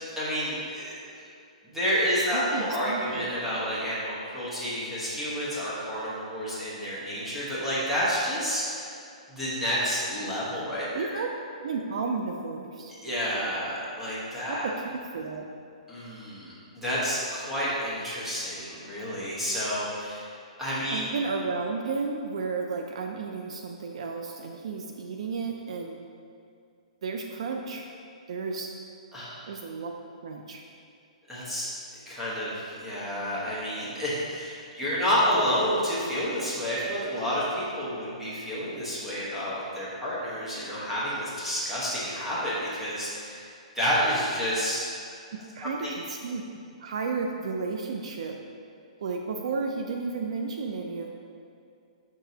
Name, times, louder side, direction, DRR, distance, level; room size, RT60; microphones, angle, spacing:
voice 1, 0.2-1.2 1.6-8.9 9.3-11.2 13.0-14.6 15.9-20.3 20.6-21.0 29.1-29.4 31.3-31.7 31.9-43.5 43.7-44.8 45.8-45.9, equal, 5° right, -10 dB, 1.1 m, -29 dB
voice 2, 2.3-3.3 10.9-11.3 11.6-12.9 14.5-15.5 20.9-26.0 27.0-27.9 28.3-28.7 29.4-29.9 30.2-30.6 34.9-35.0 45.3-46.4 46.8-48.4 49.0-51.1, right 4 dB, 55° right, 3 dB, 0.4 m, -33 dB
6.2 x 6.0 x 2.8 m, 2.4 s
hypercardioid pair, 170°, 4 cm